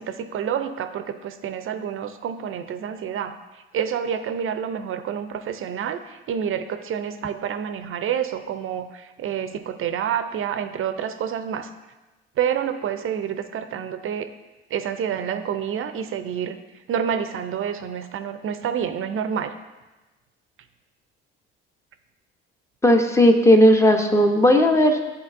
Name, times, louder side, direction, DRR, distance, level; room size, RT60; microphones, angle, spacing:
voice 1, 0.0-3.4 3.7-11.7 12.4-14.3 14.7-16.6 16.9-19.5, right 8 dB, 45° right, 9 dB, 0.6 m, -28 dB
voice 2, 22.8-25.1, equal, 10° left, 4 dB, 0.9 m, -16 dB
10.5 x 4.1 x 2.6 m, 1.1 s
hypercardioid pair, 65°, 29 cm